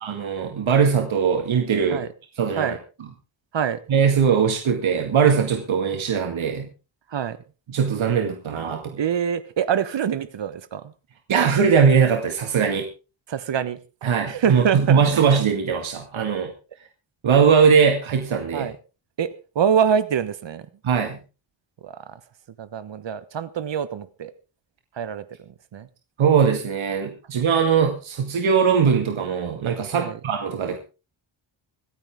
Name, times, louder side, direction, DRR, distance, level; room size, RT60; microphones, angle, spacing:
voice 1, 0.0-2.0 2.4-2.8 3.9-6.7 7.7-9.0 11.3-12.9 14.0-16.5 17.2-18.7 20.8-21.2 26.2-30.8, right 6 dB, 85° right, 4 dB, 2.1 m, -20 dB
voice 2, 9.0-10.9 13.3-13.8 14.3-15.2 18.5-18.8 19.2-20.7 21.8-22.2 22.6-24.3 24.9-25.9 29.9-30.2, right 8 dB, 65° right, 13 dB, 1.3 m, -25 dB
25.5 x 9.5 x 3.6 m, 0.33 s
wide cardioid pair, 165°, 46 cm